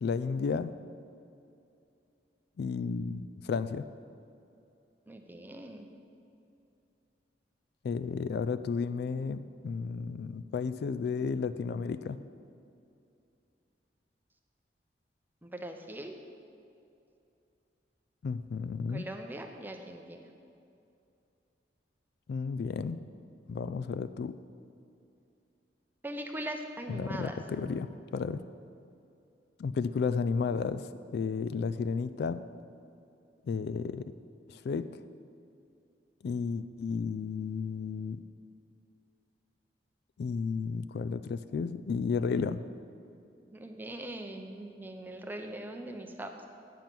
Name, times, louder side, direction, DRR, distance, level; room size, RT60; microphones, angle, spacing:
voice 1, 0.0-0.7 2.6-3.9 7.8-12.2 18.2-19.0 22.3-23.0 23.5-24.3 26.9-28.4 29.6-30.8 31.1-32.5 33.5-34.1 34.5-34.9 36.2-38.2 40.2-42.6, left 5 dB, 60° left, 13 dB, 0.3 m, -33 dB
voice 2, 5.1-5.9 15.4-16.1 18.9-20.3 26.0-27.3 43.5-46.3, right 1 dB, 10° right, 4 dB, 0.6 m, -41 dB
9.2 x 7.0 x 5.9 m, 2.6 s
head